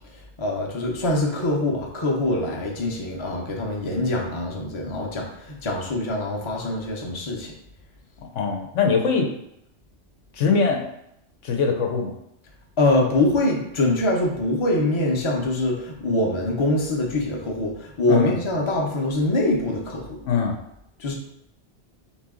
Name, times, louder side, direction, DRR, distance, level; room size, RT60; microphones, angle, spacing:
voice 1, 0.4-7.5 12.8-20.2 21.0-21.1, left 2 dB, 30° left, -1 dB, 0.7 m, -24 dB
voice 2, 8.3-9.3 10.4-10.8 11.4-12.1 18.1-18.3 20.2-20.6, left 5 dB, 85° left, 2 dB, 1.1 m, -22 dB
4.1 x 3.0 x 3.7 m, 0.77 s
omnidirectional pair, 1.2 m